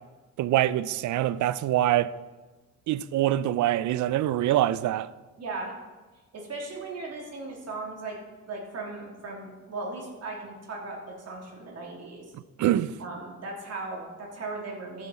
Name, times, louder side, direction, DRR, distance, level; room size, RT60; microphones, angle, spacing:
voice 1, 0.4-2.1 2.9-5.1 12.3-12.9, right 13 dB, 75° right, 0.5 m, -25 dB
voice 2, 5.4-5.7 6.3-8.2 8.5-12.3 13.0-15.1, right 3 dB, 55° right, 3.4 m, -37 dB
14.0 x 7.2 x 4.2 m
cardioid pair, 90°, 30 cm